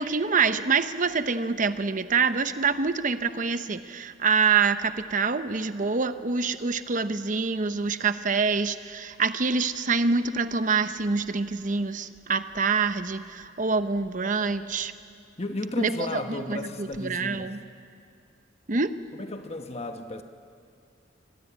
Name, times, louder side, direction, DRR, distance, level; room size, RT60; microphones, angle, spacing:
voice 1, 0.0-14.9 15.8-17.6 18.7-18.9, right 5 dB, 40° right, 11 dB, 0.8 m, -26 dB
voice 2, 15.4-17.5 18.7-18.8 19.1-20.2, left 2 dB, 35° left, 6 dB, 1.1 m, -34 dB
25.0 x 19.0 x 8.3 m, 2.4 s
head